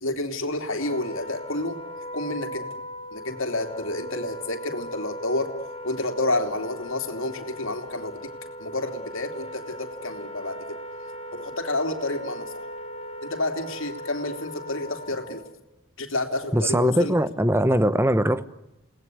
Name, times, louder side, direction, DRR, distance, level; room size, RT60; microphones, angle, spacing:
voice 1, 0.0-1.8 2.1-2.7 3.1-5.5 5.8-8.3 8.6-10.8 11.3-12.7 13.2-15.4 16.0-17.1, left 2 dB, 75° left, 3.2 m, -29 dB
Wind instrument woodwind instrument, 0.7-15.5, equal, 30° left, 2.4 m, -38 dB
voice 2, 16.5-18.4, right 1 dB, 10° right, 1.0 m, -21 dB
29.0 x 19.5 x 9.5 m
head